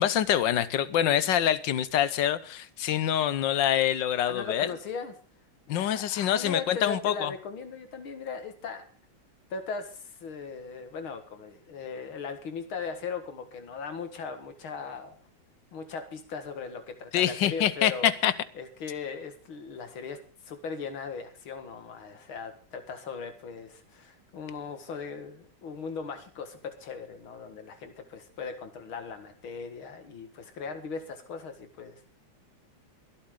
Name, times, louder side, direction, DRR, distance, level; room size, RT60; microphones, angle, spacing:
voice 1, 0.0-4.7 5.7-7.3 17.1-18.3, left 10 dB, 70° left, 16 dB, 1.4 m, -25 dB
voice 2, 4.3-5.1 5.7-8.8 9.5-15.2 15.7-18.1 18.5-20.2 20.4-32.1, left 5 dB, 85° left, 7 dB, 2.5 m, -38 dB
23.5 x 8.6 x 3.8 m, 0.41 s
omnidirectional pair, 2.2 m